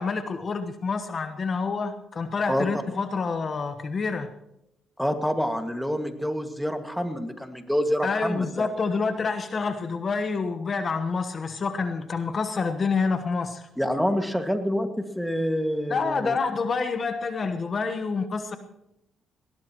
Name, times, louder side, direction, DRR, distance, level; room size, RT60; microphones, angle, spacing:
voice 1, 0.0-4.3 8.0-13.6 15.9-18.6, left 4 dB, 40° left, 8 dB, 1.2 m, -28 dB
voice 2, 2.5-2.8 5.0-8.7 13.8-16.4, equal, ahead, 6 dB, 2.0 m, -27 dB
20.0 x 18.0 x 3.1 m, 0.84 s
cardioid pair, 90°, 0 cm